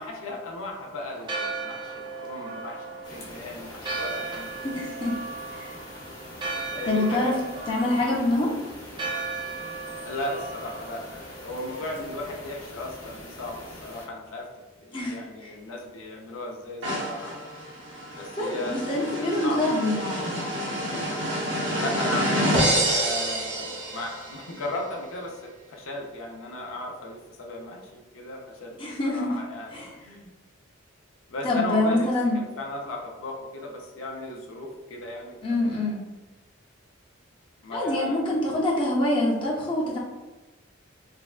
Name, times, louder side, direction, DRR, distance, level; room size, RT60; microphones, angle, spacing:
voice 1, 0.0-4.5 6.7-7.6 8.0-8.1 10.1-14.5 14.8-17.4 18.1-20.1 21.7-28.8 29.0-30.3 31.3-32.1 32.3-35.9 37.6-38.3, left 1 dB, 85° left, 0 dB, 0.6 m, -36 dB
Church bell, 1.1-12.6, right 3 dB, 25° right, 0.3 m, -37 dB
sound 1, 3.0-14.1, left 1 dB, 55° left, 0.8 m, -44 dB
voice 2, 4.8-5.2 5.5-5.8 6.9-7.4 7.7-8.5 14.9-15.5 18.4-20.4 28.8-29.4 29.7-29.9 31.4-32.4 35.4-36.0 37.7-40.0, left 1 dB, 25° left, -4 dB, 0.6 m, -25 dB
sound 2, 16.8-24.4, right 1 dB, 60° right, 0.8 m, -28 dB
3.3 x 2.2 x 2.4 m, 1.2 s
head